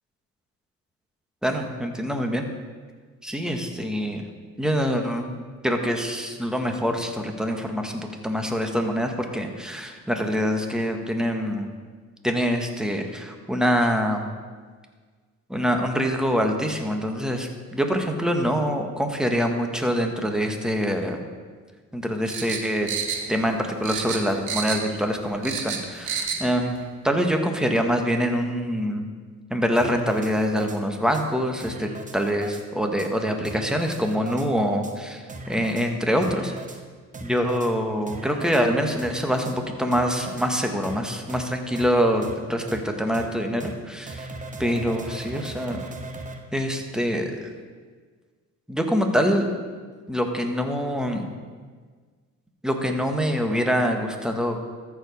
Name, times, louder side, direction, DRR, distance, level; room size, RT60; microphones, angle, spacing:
voice 1, 1.4-2.5 3.2-4.3 4.6-5.3 5.6-11.7 12.2-14.3 15.5-21.2 21.9-22.9 23.3-26.8 27.0-29.0 29.5-36.5 37.2-44.3 44.6-45.8 46.5-47.5 48.7-49.5 50.1-51.3 52.6-54.7, equal, ahead, 3 dB, 1.2 m, -25 dB
sound 1, 22.3-23.6 23.8-25.0 25.2-26.4 26.8-26.9, right 6 dB, 85° right, 1.1 m, -29 dB
sound 2, 29.8-30.8 31.1-31.2 31.6-32.6 33.0-33.1 33.4-34.5 34.8-34.9 35.3-35.9 36.2-36.8 37.1-37.7 38.1-38.6 39.0-39.5 39.9-40.5 40.8-41.0 41.3-41.4 41.8-41.9 42.2-42.3 42.7-42.8 43.1-43.3 43.6-43.7 44.1-46.4, right 2 dB, 25° right, 1.0 m, -38 dB
14.0 x 4.8 x 5.2 m, 1.6 s
cardioid pair, 90°, 30 cm